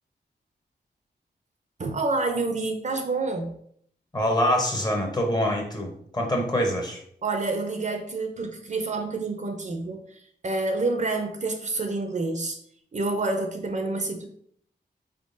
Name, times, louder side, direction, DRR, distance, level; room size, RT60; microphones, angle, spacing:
voice 1, 1.8-3.5 7.2-12.6 12.9-14.3, right 3 dB, 45° right, 5 dB, 0.5 m, -28 dB
voice 2, 4.1-7.0, equal, 25° left, 1 dB, 0.8 m, -25 dB
4.1 x 3.7 x 2.6 m, 0.65 s
wide cardioid pair, 125°, 18 cm